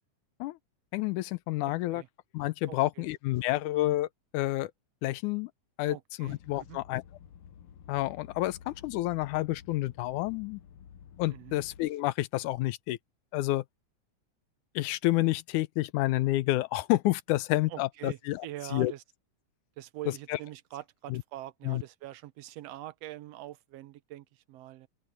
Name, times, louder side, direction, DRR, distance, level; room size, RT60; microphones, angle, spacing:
voice 1, 0.9-2.0 2.3-4.1 4.3-4.7 5.0-5.5 5.8-7.0 7.9-10.6 11.2-13.0 13.3-13.6 14.8-18.5 18.7-18.9 20.3-20.4 21.1-21.2 21.6-21.8, left 17 dB, 80° left, 2.1 m, -29 dB
voice 2, 1.6-2.1 2.7-3.1 5.9-6.4 6.7-6.8 11.3-11.6 17.7-19.0 19.8-24.9, right 14 dB, 80° right, 1.5 m, -44 dB
sound 1, 6.3-11.9, left 8 dB, 65° left, 1.9 m, -52 dB
open air
omnidirectional pair, 3.6 m